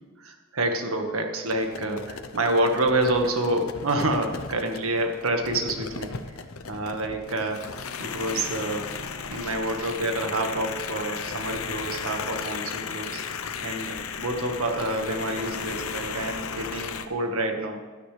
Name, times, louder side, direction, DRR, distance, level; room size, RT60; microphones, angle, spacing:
voice 1, 0.2-6.2 6.7-13.2 13.6-17.8, right 1 dB, 80° right, 4 dB, 1.7 m, -28 dB
sound 1, 1.5-17.1, left 5 dB, 85° left, 0.8 m, -35 dB
16.0 x 12.5 x 3.4 m, 1.4 s
head